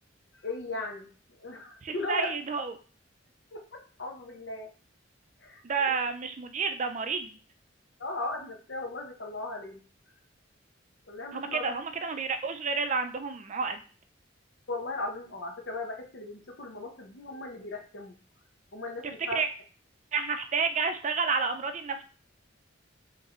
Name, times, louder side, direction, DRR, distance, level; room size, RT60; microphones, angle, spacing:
voice 1, 0.4-1.1 1.4-2.3 3.5-4.7 5.4-5.9 8.0-9.8 11.1-11.7 14.7-18.1 18.7-19.4, left 2 dB, 65° left, 2 dB, 0.9 m, -37 dB
voice 2, 1.8-2.7 5.6-7.4 11.3-13.8 19.0-19.5 20.1-22.0, right 5 dB, 40° right, 8 dB, 0.4 m, -30 dB
5.1 x 2.9 x 3.0 m, 0.39 s
head